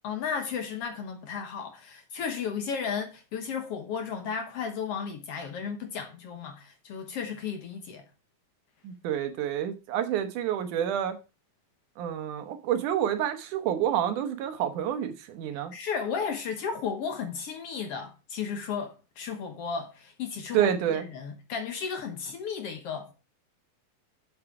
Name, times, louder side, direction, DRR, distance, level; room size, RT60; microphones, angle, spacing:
voice 1, 0.0-8.0 15.7-23.1, left 6 dB, 70° left, 1.5 m, -34 dB
voice 2, 8.8-11.2 12.0-15.7 20.5-21.1, right 10 dB, 70° right, 2.3 m, -28 dB
7.5 x 7.0 x 4.8 m
omnidirectional pair, 4.1 m